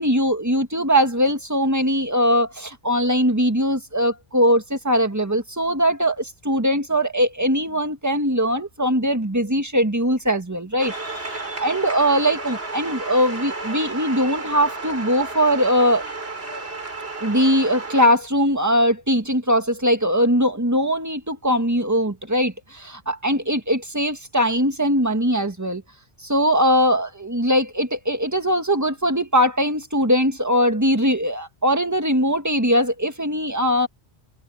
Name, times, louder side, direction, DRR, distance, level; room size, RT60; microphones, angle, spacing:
voice 1, 0.0-10.9 11.6-16.0 17.2-25.8 26.2-33.9, equal, 15° right, 1.7 m, -21 dB
sound 1, 10.8-18.1, right 3 dB, 65° right, 6.6 m, -32 dB
omnidirectional pair, 1.1 m